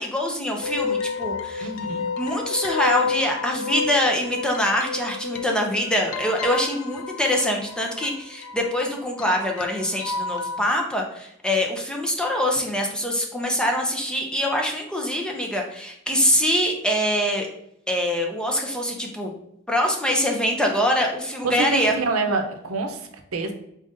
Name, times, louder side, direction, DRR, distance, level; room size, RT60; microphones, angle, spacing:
voice 1, 0.0-1.7 2.2-17.5 17.9-19.3 19.7-22.0, equal, 5° left, 1 dB, 0.6 m, -24 dB
sound 1, 0.6-10.7, left 5 dB, 85° left, 0.4 m, -31 dB
voice 2, 1.6-2.0 21.4-23.5, right 3 dB, 90° right, 5 dB, 0.6 m, -26 dB
3.9 x 3.8 x 2.5 m, 0.76 s
head